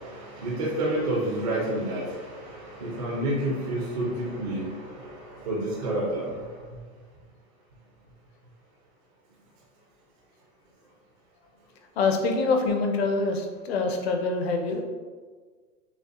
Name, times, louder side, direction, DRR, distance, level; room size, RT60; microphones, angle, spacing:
voice 1, 0.0-6.5, right 1 dB, 25° right, -5 dB, 0.4 m, -29 dB
voice 2, 12.0-14.8, left 3 dB, 45° left, 4 dB, 0.5 m, -25 dB
6.6 x 2.4 x 2.4 m, 1.5 s
supercardioid pair, 160°, 46 cm